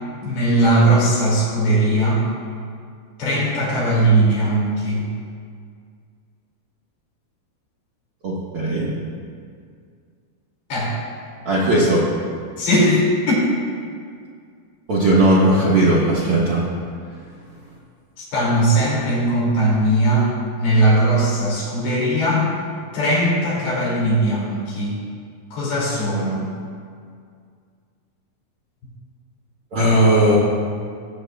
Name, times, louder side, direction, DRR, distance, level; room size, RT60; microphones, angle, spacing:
voice 1, 0.2-2.2 3.2-5.1 10.7-10.9 12.6-13.4 18.2-20.3 20.6-22.5 22.9-25.0 25.5-26.5, right 1 dB, 80° left, -6 dB, 4.4 m, -19 dB
voice 2, 8.2-8.9 11.4-12.0 14.9-16.6 29.7-30.4, right 1 dB, 65° right, -8 dB, 1.3 m, -17 dB
18.0 x 7.9 x 2.3 m, 2.2 s
omnidirectional pair, 4.4 m